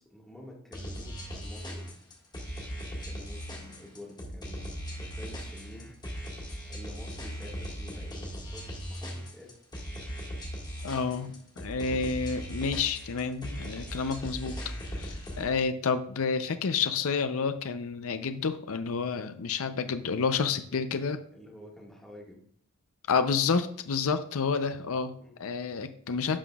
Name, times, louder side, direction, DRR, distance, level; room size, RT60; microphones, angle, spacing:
voice 1, 0.0-2.0 2.8-5.9 6.4-9.6 20.7-20.9 21.3-22.4 25.2-25.4, left 1 dB, ahead, -3 dB, 1.7 m, -49 dB
sound 1, 0.7-15.5, equal, 20° left, 1.7 m, -39 dB
voice 2, 10.8-14.6 15.0-21.2 23.1-25.1 25.4-26.4, left 5 dB, 70° left, 10 dB, 0.6 m, -29 dB
11.0 x 5.8 x 2.3 m, 0.65 s
head